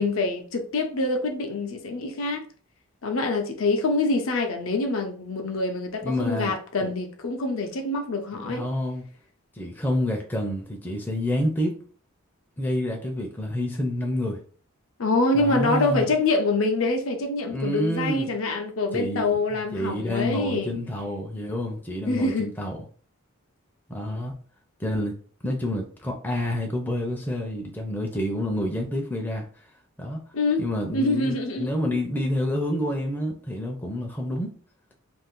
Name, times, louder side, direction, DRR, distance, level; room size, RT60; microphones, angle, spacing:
voice 1, 0.0-2.4 3.0-8.6 15.0-20.7 22.1-22.5 30.3-30.6 30.9-31.7, left 2 dB, 70° left, 0.6 m, -25 dB
voice 2, 6.0-6.5 6.8-6.9 8.3-9.1 9.5-11.8 12.6-14.4 15.3-16.1 17.5-18.3 18.9-22.8 23.9-24.3 24.8-25.1 25.4-29.5 30.0-30.2 30.6-34.5, left 1 dB, 10° left, 0.4 m, -28 dB
2.5 x 2.4 x 3.6 m
head